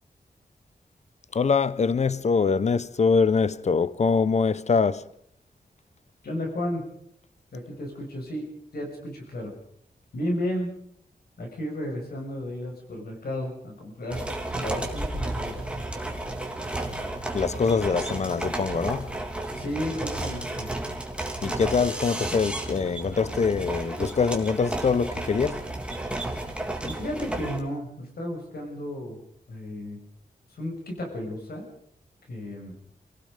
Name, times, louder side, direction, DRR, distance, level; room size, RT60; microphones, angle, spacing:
voice 1, 1.3-5.0 17.3-19.1 21.4-25.6, left 5 dB, 45° left, 0.8 m, -24 dB
voice 2, 6.2-6.9 7.5-8.4 8.7-9.5 10.1-10.7 11.4-15.6 19.6-20.7 26.9-29.2 29.5-30.0 30.5-31.7 32.3-32.8, left 1 dB, 75° left, 6.1 m, -33 dB
sound 1, 14.1-27.6, right 1 dB, 5° right, 3.2 m, -32 dB
28.5 x 18.0 x 5.2 m
wide cardioid pair, 130°, 16 cm